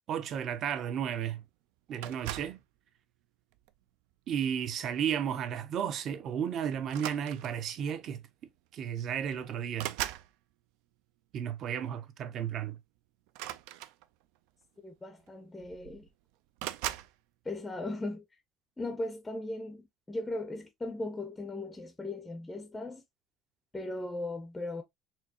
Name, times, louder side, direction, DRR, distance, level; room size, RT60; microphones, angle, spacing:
voice 1, 0.1-1.4 1.9-2.6 4.3-8.2 8.7-9.9 11.3-12.8, right 8 dB, 45° right, 0.6 m, -33 dB
sound 1, 2.0-2.6 3.5-3.8 5.3-5.5 5.8-6.0 6.8-7.7 8.7-8.8 9.1-10.3 13.3-14.4 15.3-15.4 15.6-16.1 16.6-17.1, right 14 dB, 90° right, 0.3 m, -39 dB
voice 2, 14.8-16.1 17.5-18.2 18.8-23.0 23.7-24.8, left 2 dB, 10° left, 0.5 m, -38 dB
4.4 x 2.7 x 2.7 m
cardioid pair, 155°, 0 cm